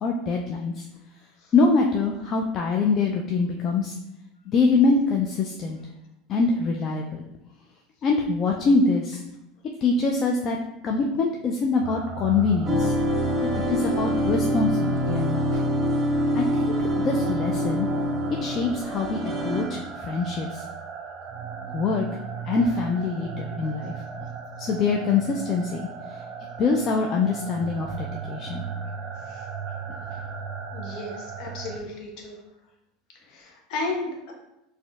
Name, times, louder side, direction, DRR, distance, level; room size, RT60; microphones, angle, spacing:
voice 1, 0.0-0.8 1.5-4.0 4.5-5.8 6.3-7.3 8.0-9.2 9.8-10.6 10.8-12.9 13.4-15.6 16.3-17.9 18.4-20.6 21.7-22.1 22.4-23.9 24.6-26.2 26.6-28.6, left 4 dB, 45° left, 1 dB, 0.4 m, -24 dB
sound 1, 11.8-31.8, right 7 dB, 50° right, 0.4 m, -36 dB
sound 2, 12.7-19.7, equal, 10° right, 1.4 m, -25 dB
voice 2, 30.7-32.4 33.3-34.3, left 3 dB, 60° left, 1 dB, 0.8 m, -33 dB
4.2 x 2.5 x 2.3 m, 0.88 s
hypercardioid pair, 85°, 0 cm